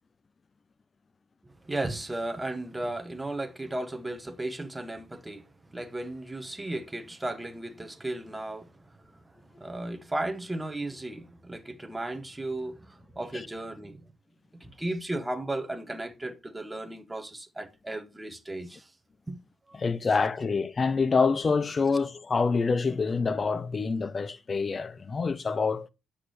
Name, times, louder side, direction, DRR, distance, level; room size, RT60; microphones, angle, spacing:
voice 1, 1.4-5.5 5.7-8.7 9.6-14.0 14.5-18.9 19.3-19.4 19.7-19.8, right 2 dB, 10° right, 1.0 m, -35 dB
voice 2, 19.7-25.9, left 4 dB, 35° left, 0.6 m, -26 dB
7.9 x 6.0 x 3.2 m
cardioid pair, 90°, 0 cm